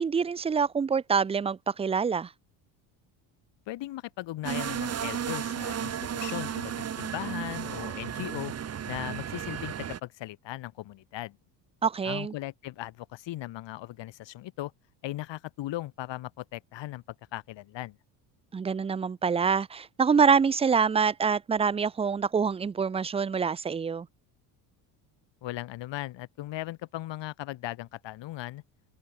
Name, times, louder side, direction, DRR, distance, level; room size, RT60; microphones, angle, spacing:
voice 1, 0.0-2.3 11.8-12.3 18.5-24.1, right 6 dB, 15° right, 0.4 m, -26 dB
voice 2, 3.7-8.5 8.9-11.4 12.0-14.7 15.0-17.0 17.3-18.0 25.4-28.6, left 15 dB, 65° left, 6.3 m, -38 dB
sound 1, 4.4-10.0, right 8 dB, 30° right, 1.4 m, -34 dB
open air
cardioid pair, 115°, 47 cm